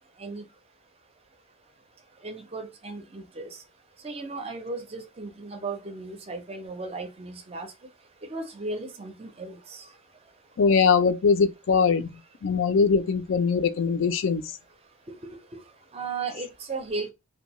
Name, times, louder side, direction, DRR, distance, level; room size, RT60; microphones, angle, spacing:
voice 1, 2.2-3.5 4.0-7.7 8.3-9.6 15.9-17.1, right 3 dB, 30° right, 0.4 m, -35 dB
voice 2, 10.6-12.1 12.4-14.4, left 5 dB, 65° left, 0.4 m, -21 dB
2.6 x 2.2 x 2.9 m
head